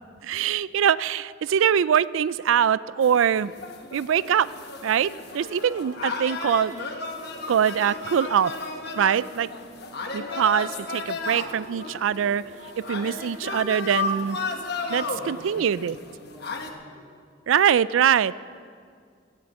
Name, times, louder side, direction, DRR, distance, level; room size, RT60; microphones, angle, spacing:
voice 1, 0.2-3.5 3.9-4.5 4.8-6.7 7.5-8.5 9.0-9.5 10.1-12.4 12.8-14.4 14.9-15.9 17.5-18.3, right 8 dB, 80° right, 19 dB, 0.3 m, -23 dB
sound 1, 3.0-16.7, left 3 dB, 55° left, 1.2 m, -34 dB
sound 2, 5.3-14.5, left 2 dB, 35° right, 1.3 m, -51 dB
voice 2, 14.9-17.1, equal, ahead, -4 dB, 2.8 m, -49 dB
15.0 x 8.5 x 7.7 m, 2.1 s
head